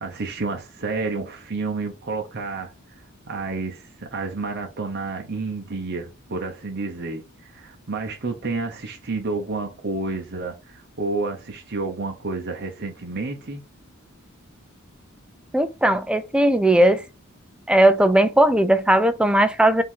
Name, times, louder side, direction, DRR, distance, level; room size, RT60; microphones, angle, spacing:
voice 1, 0.0-2.7 3.3-13.6, right 3 dB, 50° right, 0.9 m, -30 dB
voice 2, 15.5-17.0 17.7-19.8, right 1 dB, 5° right, 0.4 m, -17 dB
5.3 x 2.8 x 3.6 m
head